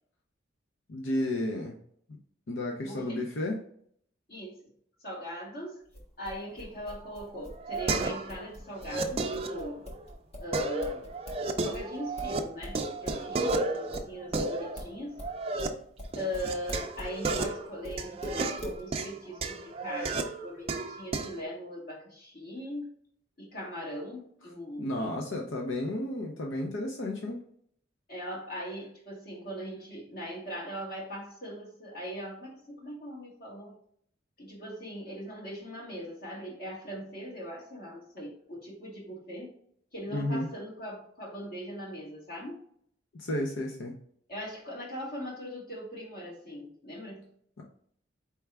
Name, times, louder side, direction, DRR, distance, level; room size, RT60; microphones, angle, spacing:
voice 1, 0.9-1.8 2.5-3.6 24.8-27.4 40.1-40.5 43.1-43.9, left 1 dB, 85° left, 0 dB, 0.7 m, -32 dB
voice 2, 2.8-3.2 4.3-4.7 5.0-5.8 6.2-9.8 10.4-11.1 11.6-15.2 16.2-23.0 23.4-25.1 28.1-33.7 34.4-39.6 39.9-42.6 44.3-47.3, equal, 50° left, -5 dB, 1.9 m, -40 dB
sound 1, 5.9-11.5 11.7-17.5 17.8-18.8, equal, 35° left, 1.3 m, -42 dB
sound 2, 7.0-8.4 8.7-10.0 10.5-12.4 12.7-15.7 16.1-21.4, right 3 dB, 30° right, 0.4 m, -33 dB
4.6 x 3.4 x 3.4 m, 0.63 s
head